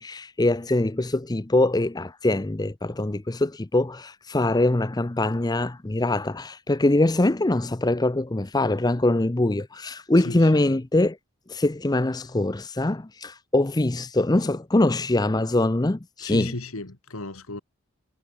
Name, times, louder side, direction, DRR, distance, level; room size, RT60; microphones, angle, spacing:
voice 1, 0.0-11.2 11.5-16.5, left 2 dB, 15° left, 0.6 m, -23 dB
voice 2, 10.2-10.8 16.2-17.6, left 2 dB, 70° left, 2.3 m, -35 dB
head